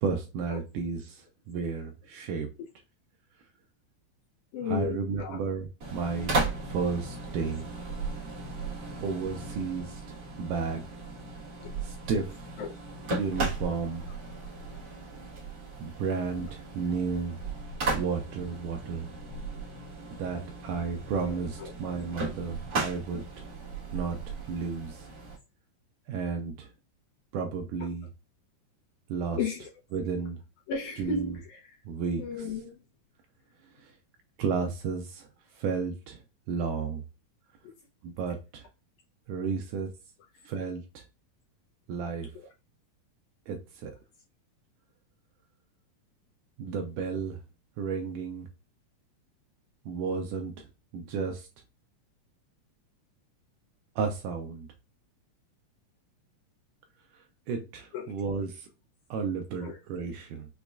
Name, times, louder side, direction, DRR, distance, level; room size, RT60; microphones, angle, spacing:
voice 1, 0.0-2.5 4.7-6.4 6.7-7.7 9.0-10.0 10.4-10.8 11.8-12.6 13.2-14.0 15.8-17.4 17.9-19.1 20.2-23.2 23.9-24.2 24.5-25.1 26.1-26.7 27.3-28.1 29.1-29.4 29.9-30.4 31.0-31.3 31.9-32.2 34.4-35.3 35.6-36.2 36.5-37.0 38.0-38.6 39.3-39.9 40.5-41.0 41.9-42.3 43.5-43.9 46.6-47.4 47.8-48.5 49.9-50.7 50.9-51.5 54.0-54.7 57.5-58.7 59.1-60.5, right 5 dB, 80° right, 1.9 m, -32 dB
voice 2, 4.5-5.4 12.6-12.8 21.2-21.7 29.4-29.7 30.7-31.8 32.2-32.8 37.6-37.7 42.3-42.5 57.9-58.1 59.6-59.8, left 5 dB, 75° left, 1.9 m, -35 dB
sound 1, 5.8-25.4, right 3 dB, 55° right, 1.2 m, -36 dB
5.9 x 2.3 x 2.3 m
omnidirectional pair, 4.1 m